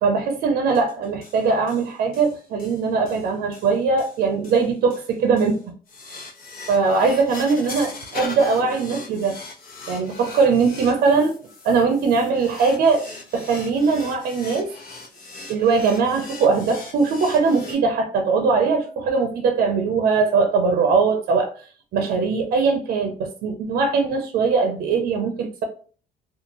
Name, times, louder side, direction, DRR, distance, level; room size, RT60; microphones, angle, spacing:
voice 1, 0.0-5.6 6.7-9.4 9.9-11.4 11.6-13.0 13.3-14.7 15.5-21.5 21.9-25.6, right 4 dB, 65° right, 0.5 m, -20 dB
sound 1, 0.7-17.7, left 3 dB, 60° left, 1.1 m, -40 dB
2.6 x 2.4 x 2.9 m
cardioid pair, 110°, 17 cm